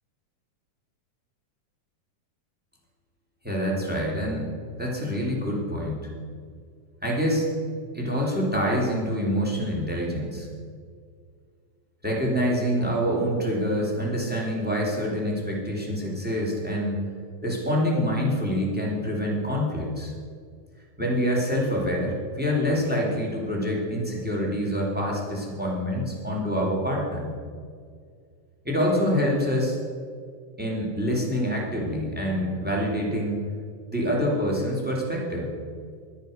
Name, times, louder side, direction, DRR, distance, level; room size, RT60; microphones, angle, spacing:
voice 1, 3.4-4.5 4.8-6.1 7.0-7.5 7.9-10.5 12.0-17.0 17.4-20.1 21.0-27.3 28.6-29.8 30.6-33.4 33.9-35.5, equal, 5° right, -2 dB, 2.4 m, -26 dB
11.5 x 10.5 x 6.6 m, 2.1 s
omnidirectional pair, 3.7 m